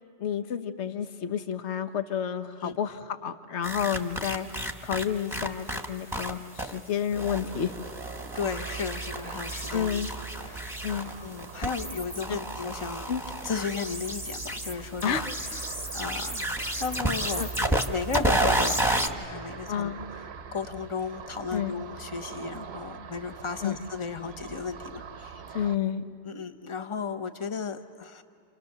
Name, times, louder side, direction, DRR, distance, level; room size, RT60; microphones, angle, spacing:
voice 1, 0.2-4.5 4.8-7.7 9.7-10.1 10.8-11.1 12.3-12.4 13.1-13.2 15.0-15.3 17.4-17.5 19.7-20.0 21.5-21.7 23.6-23.7 25.5-26.0, left 8 dB, 75° left, 9 dB, 1.2 m, -30 dB
sound 1, 3.6-6.3 6.6-6.8 7.1-19.1, right 1 dB, ahead, 1.2 m, -31 dB
Ocean, 7.5-25.8, right 6 dB, 65° right, 1.0 m, -44 dB
voice 2, 8.3-10.0 10.3-10.8 11.2-13.0 13.4-15.7 15.9-20.3 20.5-25.7 26.2-28.2, left 5 dB, 30° left, 8 dB, 1.0 m, -35 dB
28.5 x 28.5 x 6.7 m, 2.6 s
omnidirectional pair, 1.2 m